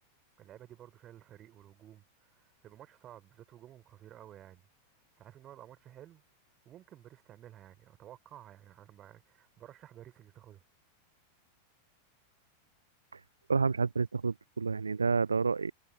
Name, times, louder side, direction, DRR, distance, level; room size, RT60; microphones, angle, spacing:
voice 1, 0.4-4.7 5.2-6.2 6.6-10.6, right 12 dB, 30° right, 4.4 m, -53 dB
voice 2, 13.5-15.7, right 4 dB, 75° right, 0.5 m, -29 dB
figure-of-eight pair, 90°, 0 cm